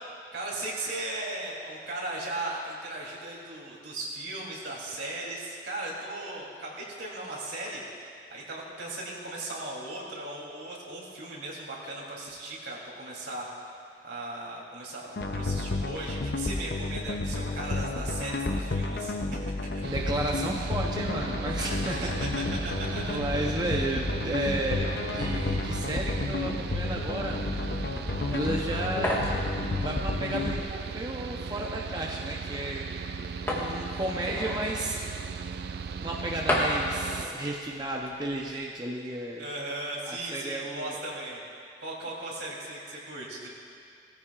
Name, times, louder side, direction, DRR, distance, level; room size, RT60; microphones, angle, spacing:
voice 1, 0.3-7.8 8.3-13.5 14.0-19.1 19.7-19.8 20.4-20.5 21.8-23.2 23.7-23.8 39.4-41.4 41.8-43.5, right 2 dB, 80° right, -4 dB, 3.3 m, -37 dB
sound 1, 15.2-30.6, left 2 dB, 60° left, 0.7 m, -31 dB
voice 2, 19.8-22.0 23.0-27.4 28.3-29.2 29.8-32.8 33.5-35.0 36.0-39.4 40.1-41.0, right 1 dB, 25° right, -2 dB, 0.8 m, -33 dB
Mechanical fan, 19.8-37.3, right 5 dB, 60° right, 0.3 m, -37 dB
sound 2, 29.0-38.6, left 1 dB, 15° left, 1.6 m, -35 dB
18.5 x 14.5 x 2.5 m, 2.4 s
head